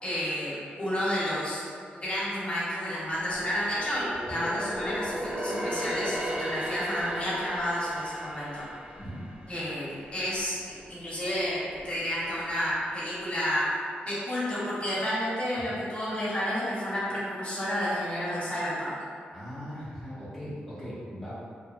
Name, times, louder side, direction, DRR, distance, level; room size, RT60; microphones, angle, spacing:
voice 1, 0.0-1.6 1.9-8.6 9.5-13.7 14.0-18.9, equal, 35° left, -9 dB, 0.9 m, -31 dB
sound 1, 3.0-10.5 10.9-11.1 11.7-12.4 12.7-12.8, equal, 35° right, 0.6 m, -36 dB
voice 2, 19.3-21.3, equal, ahead, -10 dB, 0.8 m, -39 dB
2.7 x 2.1 x 2.5 m, 2.2 s
cardioid pair, 70°, 4 cm